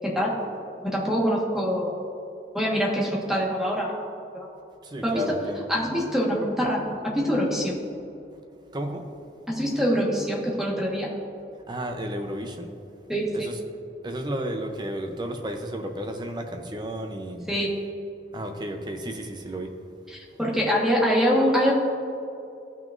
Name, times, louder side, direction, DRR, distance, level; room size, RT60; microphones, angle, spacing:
voice 1, 0.9-1.9 2.5-3.9 4.3-4.5 5.0-5.1 5.7-6.8 7.1-7.7 9.5-11.1 13.1-13.5 17.5-17.7 20.1-21.7, equal, ahead, -4 dB, 1.5 m, -24 dB
voice 2, 4.8-5.7 8.7-9.1 11.7-12.8 13.3-13.6 14.0-17.5 18.3-19.7, equal, 25° right, 4 dB, 0.7 m, -32 dB
15.0 x 6.1 x 2.6 m, 2.7 s
head